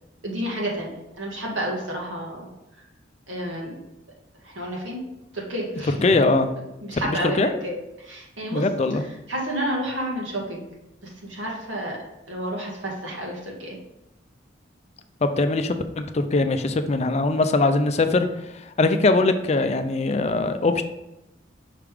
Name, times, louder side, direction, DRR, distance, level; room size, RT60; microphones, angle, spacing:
voice 1, 0.2-2.5 3.3-3.8 4.4-5.0 5.3-6.0 6.8-8.7 8.9-10.7 11.0-12.0 12.3-13.8, right 1 dB, 90° right, -2 dB, 1.8 m, -30 dB
voice 2, 6.0-6.5 6.9-7.5 8.5-9.0 15.2-18.3 18.8-20.8, left 3 dB, 35° left, 8 dB, 0.4 m, -21 dB
5.7 x 3.5 x 4.8 m, 0.91 s
head